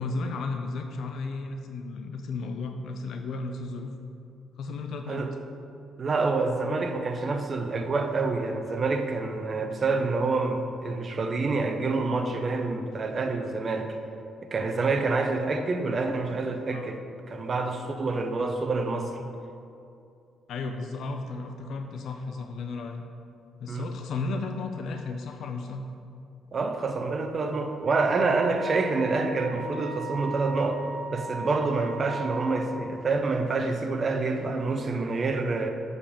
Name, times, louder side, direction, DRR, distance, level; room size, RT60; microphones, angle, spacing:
voice 1, 0.0-3.9 4.6-5.3 16.7-16.9 20.5-23.1 23.6-25.9 28.2-28.4, left 3 dB, 65° left, 5 dB, 0.6 m, -34 dB
voice 2, 6.0-13.9 14.4-19.1 23.7-23.9 26.5-30.8 31.1-35.7, right 3 dB, 45° right, 5 dB, 0.9 m, -27 dB
Wind instrument woodwind instrument, 27.8-32.7, right 4 dB, 85° right, 0.8 m, -38 dB
6.9 x 5.4 x 7.1 m, 2.6 s
hypercardioid pair, 45°, 0 cm